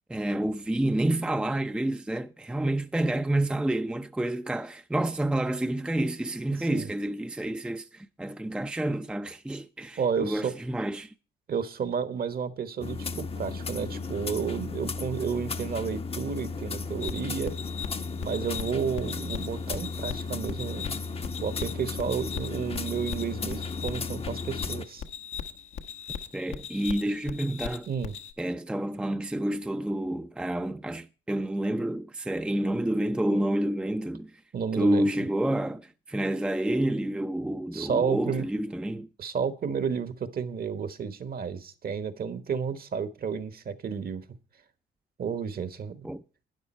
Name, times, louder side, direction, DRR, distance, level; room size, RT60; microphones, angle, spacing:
voice 1, 0.1-11.1 26.3-27.9 28.4-34.3 34.8-39.1 46.0-46.2, right 1 dB, 5° right, 0.5 m, -29 dB
voice 2, 6.6-6.9 10.0-10.5 11.5-17.5 18.2-21.0 21.4-25.0 27.9-28.1 34.5-35.1 37.7-38.5 39.2-44.2 45.2-46.1, right 6 dB, 50° right, 1.3 m, -31 dB
sound 1, 12.8-24.9, left 4 dB, 30° left, 0.8 m, -35 dB
sound 2, 17.0-28.3, left 7 dB, 80° left, 1.2 m, -39 dB
12.0 x 9.7 x 4.3 m
cardioid pair, 90°, 20 cm